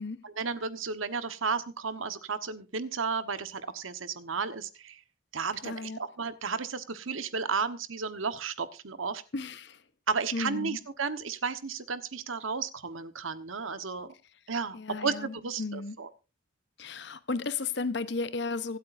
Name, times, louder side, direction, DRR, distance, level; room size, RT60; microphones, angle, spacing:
voice 1, 0.2-5.0 5.3-9.2 10.1-14.1 14.5-16.1, right 5 dB, 85° right, 1.2 m, -33 dB
voice 2, 5.6-6.0 9.3-9.8 10.3-10.8 14.7-16.0 16.8-18.8, left 3 dB, 60° left, 0.9 m, -34 dB
25.0 x 8.4 x 2.6 m
head